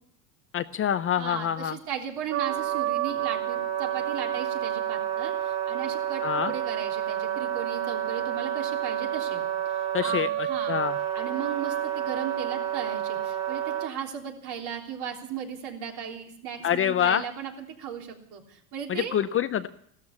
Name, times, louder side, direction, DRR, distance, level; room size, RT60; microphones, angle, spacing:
voice 1, 0.5-1.8 6.2-6.5 9.9-10.3 10.7-11.0 16.6-17.2 18.9-19.7, left 9 dB, 30° left, 11 dB, 0.6 m, -26 dB
voice 2, 1.2-10.8 11.1-19.1, right 8 dB, 55° right, 2 dB, 3.4 m, -36 dB
Wind instrument woodwind instrument, 2.3-13.9, right 10 dB, 35° right, 1.5 m, -29 dB
15.5 x 13.0 x 7.1 m, 0.68 s
supercardioid pair, 110°, 47 cm